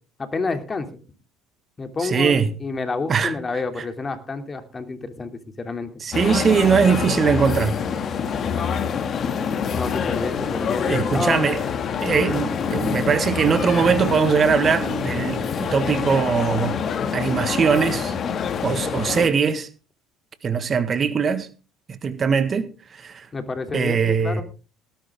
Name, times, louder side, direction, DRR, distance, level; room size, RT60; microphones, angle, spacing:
voice 1, 0.2-0.9 1.8-5.3 5.6-5.9 9.7-11.4 23.3-24.4, left 3 dB, 25° left, 2.9 m, -29 dB
voice 2, 2.0-2.5 3.1-3.3 6.0-7.8 10.9-11.6 12.0-16.8 17.1-18.1 18.6-19.7 20.4-21.5 22.0-23.3 23.7-24.4, right 6 dB, 40° right, 1.5 m, -21 dB
sound 1, 6.1-19.3, left 6 dB, 45° left, 2.1 m, -26 dB
18.5 x 10.5 x 3.7 m
hypercardioid pair, 70°, 0 cm